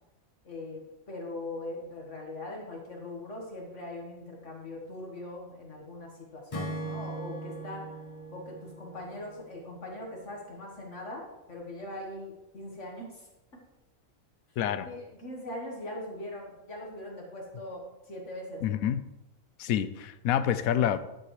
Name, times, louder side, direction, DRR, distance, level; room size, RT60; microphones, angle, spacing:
voice 1, 0.4-8.0 8.3-13.6 14.8-18.8, left 1 dB, 60° left, -1 dB, 1.8 m, -41 dB
Acoustic guitar / Strum, 6.5-9.9, right 2 dB, 30° left, 0.7 m, -40 dB
voice 2, 14.6-14.9 18.6-19.0 19.6-21.0, left 10 dB, 80° left, 13 dB, 1.0 m, -27 dB
11.0 x 8.3 x 3.2 m, 0.96 s
omnidirectional pair, 1.5 m